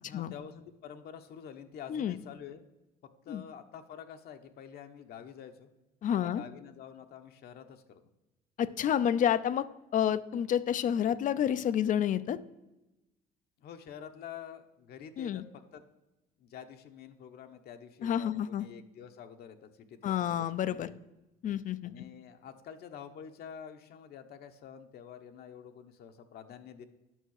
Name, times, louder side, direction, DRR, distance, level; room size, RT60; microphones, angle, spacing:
voice 1, 0.0-2.6 3.2-5.7 6.2-8.0 13.6-15.8 16.4-20.9 21.8-26.8, left 8 dB, 65° left, 7 dB, 1.0 m, -48 dB
voice 2, 6.0-6.4 8.6-9.7 9.9-12.4 15.2-15.4 18.0-18.7 20.0-20.9 21.4-21.9, left 9 dB, 50° left, 16 dB, 0.5 m, -29 dB
9.1 x 6.4 x 6.4 m, 1.0 s
cardioid pair, 110°, 17 cm